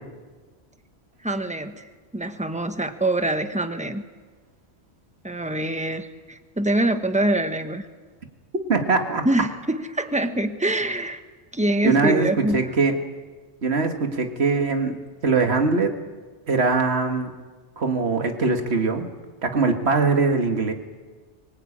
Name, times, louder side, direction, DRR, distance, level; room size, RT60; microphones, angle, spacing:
voice 1, 1.2-1.9 2.1-4.0 5.2-7.9 9.2-11.2 11.5-12.7, right 1 dB, 5° right, 8 dB, 1.0 m, -24 dB
voice 2, 8.7-9.2 11.8-12.9 13.6-15.0 15.2-15.9 16.5-17.3 17.8-19.0 19.4-20.7, right 4 dB, 65° right, 5 dB, 2.0 m, -21 dB
24.5 x 16.5 x 8.7 m, 1.4 s
omnidirectional pair, 1.2 m